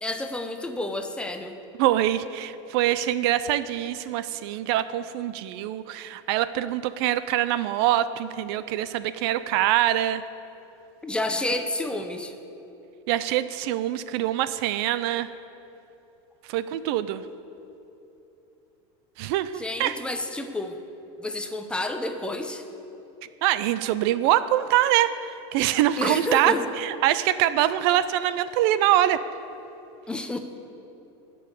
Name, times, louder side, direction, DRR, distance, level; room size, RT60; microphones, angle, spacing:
voice 1, 0.0-1.6 11.0-12.3 19.5-20.8 21.2-22.6 26.0-26.7 30.1-30.4, left 2 dB, 5° left, 6 dB, 0.6 m, -30 dB
voice 2, 1.8-10.2 13.1-15.3 16.5-17.2 19.2-20.0 23.4-29.2, right 13 dB, 65° right, 14 dB, 0.4 m, -24 dB
13.5 x 5.4 x 8.2 m, 3.0 s
supercardioid pair, 150°, 14 cm